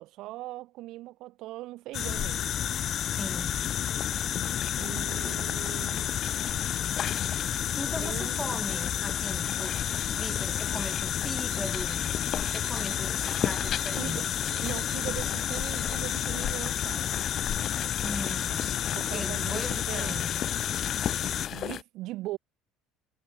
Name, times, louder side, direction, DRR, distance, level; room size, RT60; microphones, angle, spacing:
voice 1, 0.0-2.5 4.8-6.1 8.0-8.4 14.0-14.3 14.5-17.3 18.9-20.3 21.5-22.4, right 17 dB, 70° right, 3.5 m, -40 dB
sound 1, 1.9-21.8, left 10 dB, 50° left, 0.4 m, -30 dB
voice 2, 3.1-3.8 5.2-5.5 7.8-12.1 12.4-14.3 18.0-18.8 19.1-20.4, equal, ahead, 2.1 m, -39 dB
Alarm, 11.5-12.0 12.5-13.0 13.5-14.0 14.5-15.0 15.5-16.0, right 7 dB, 40° right, 3.4 m, -47 dB
supercardioid pair, 90°, 0 cm